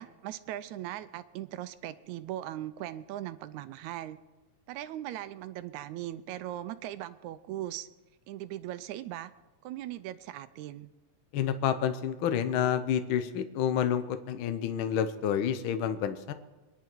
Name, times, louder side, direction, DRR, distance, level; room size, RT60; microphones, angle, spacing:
voice 1, 0.0-4.2 4.7-7.9 8.3-9.3 9.6-10.9, right 13 dB, 80° right, 13 dB, 1.9 m, -39 dB
voice 2, 11.3-16.3, left 9 dB, 80° left, 9 dB, 1.1 m, -29 dB
24.5 x 10.5 x 4.6 m, 1.1 s
omnidirectional pair, 3.5 m